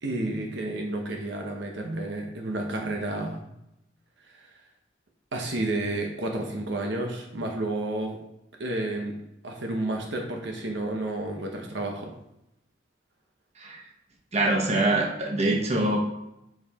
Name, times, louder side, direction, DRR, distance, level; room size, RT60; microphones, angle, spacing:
voice 1, 0.0-3.4 4.2-4.5 5.3-8.2 8.6-9.1 9.4-12.1, right 2 dB, 65° right, 2 dB, 1.0 m, -31 dB
voice 2, 14.3-16.0, right 2 dB, 35° right, 1 dB, 1.1 m, -24 dB
7.9 x 4.8 x 3.6 m, 0.85 s
head